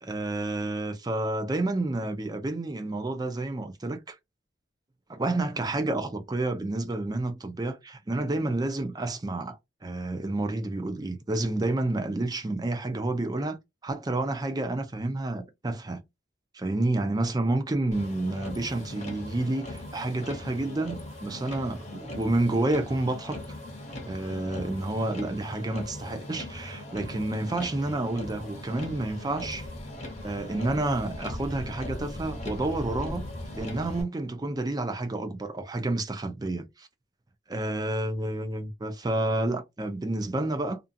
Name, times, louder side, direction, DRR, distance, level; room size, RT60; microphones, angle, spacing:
voice 1, 0.0-4.2 5.1-9.6 9.8-16.0 16.5-23.4 24.1-29.6 30.0-33.3 33.5-36.9 37.5-40.8, right 2 dB, 20° right, 0.4 m, -29 dB
Motor vehicle (road), 17.9-34.0, left 1 dB, 35° left, 0.7 m, -39 dB
2.5 x 2.3 x 2.6 m
head